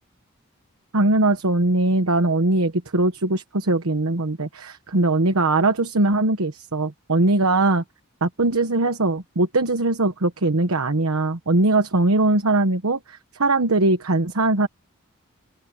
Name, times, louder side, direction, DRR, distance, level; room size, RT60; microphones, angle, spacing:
voice 1, 0.9-7.8 8.2-14.7, right 2 dB, 80° right, 1.2 m, -21 dB
open air
head